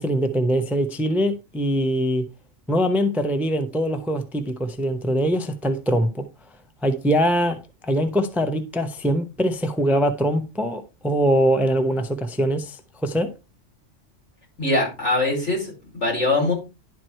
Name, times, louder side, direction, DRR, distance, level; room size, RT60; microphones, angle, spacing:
voice 1, 0.0-2.3 2.7-6.2 6.8-7.6 7.8-13.3, equal, ahead, 0.7 m, -22 dB
voice 2, 14.6-16.5, left 2 dB, 75° left, 5.3 m, -22 dB
11.0 x 4.8 x 4.5 m
omnidirectional pair, 1.2 m